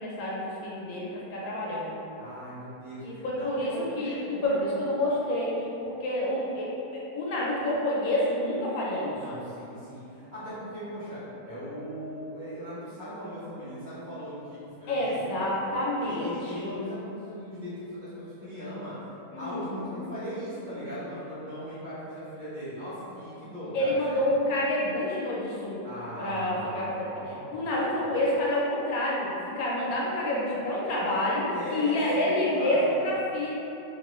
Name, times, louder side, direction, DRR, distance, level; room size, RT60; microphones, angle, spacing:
voice 1, 0.0-2.0 3.0-4.1 4.4-5.5 5.8-6.7 7.1-9.2 14.9-16.7 19.3-20.2 23.7-25.8 26.2-33.5, left 1 dB, 75° left, -5 dB, 1.0 m, -28 dB
voice 2, 2.2-4.9 9.1-15.3 16.0-19.0 19.4-24.3 25.8-27.6 27.9-28.1 31.5-33.1, equal, 35° right, -15 dB, 1.3 m, -39 dB
2.9 x 2.8 x 3.0 m, 2.9 s
omnidirectional pair, 1.6 m